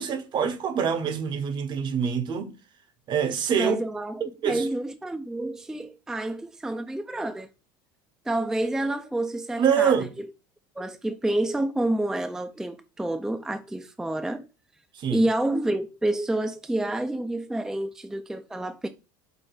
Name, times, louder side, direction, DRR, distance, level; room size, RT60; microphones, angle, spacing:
voice 1, 0.0-2.5 3.1-3.8 4.2-4.7 9.6-10.1 15.0-15.2, right 7 dB, 45° right, 0.8 m, -25 dB
voice 2, 3.6-7.5 8.3-10.3 10.8-14.5 15.1-18.9, right 1 dB, 5° right, 0.3 m, -28 dB
4.8 x 2.1 x 4.5 m
hypercardioid pair, 90°, 11 cm